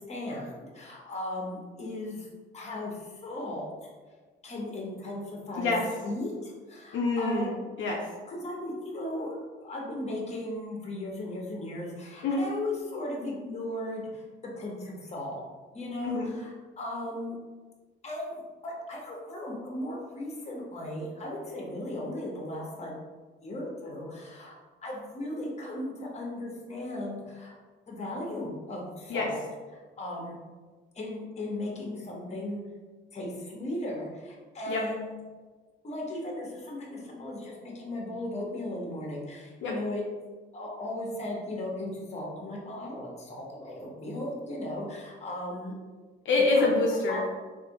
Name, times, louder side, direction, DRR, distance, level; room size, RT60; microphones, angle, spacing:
voice 1, 0.1-2.3 2.5-3.7 4.4-5.7 6.0-7.7 8.3-14.2 14.6-15.4 15.7-17.3 18.0-22.9 23.4-24.5 24.8-27.5 27.9-29.4 29.7-30.4 30.9-32.6 33.1-35.2 35.8-40.0 40.5-45.7 46.5-46.7 47.1-47.2, left 1 dB, 35° left, -2 dB, 1.0 m, -36 dB
voice 2, 6.9-8.0 12.2-12.4 16.0-16.3 29.1-29.3 34.7-34.8 39.6-39.7 46.3-47.3, left 3 dB, 75° left, -1 dB, 0.5 m, -26 dB
3.3 x 2.6 x 2.8 m, 1.4 s
cardioid pair, 90°, 20 cm